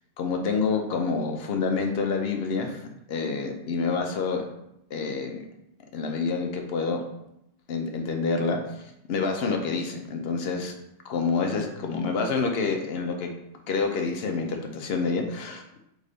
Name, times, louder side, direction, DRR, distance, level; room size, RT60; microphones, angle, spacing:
voice 1, 0.2-2.8 3.1-4.4 4.9-5.4 5.9-7.0 7.7-8.6 9.1-10.7 11.0-13.3 13.7-15.6, left 4 dB, 60° left, 3 dB, 0.7 m, -27 dB
3.6 x 3.4 x 3.8 m, 0.83 s
omnidirectional pair, 1.4 m